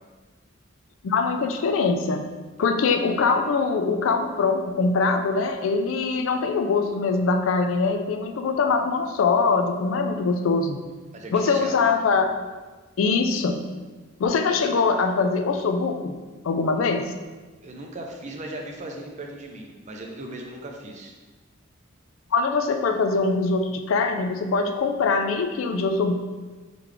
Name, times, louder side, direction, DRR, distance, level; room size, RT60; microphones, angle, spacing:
voice 1, 1.0-2.2 2.6-10.8 11.3-12.3 13.0-13.7 14.2-16.1 16.4-17.1 22.3-26.1, left 4 dB, 85° left, 6 dB, 0.4 m, -23 dB
voice 2, 11.1-11.9 17.6-21.1, right 1 dB, 35° right, 1 dB, 0.5 m, -38 dB
3.8 x 3.2 x 3.3 m, 1.3 s
head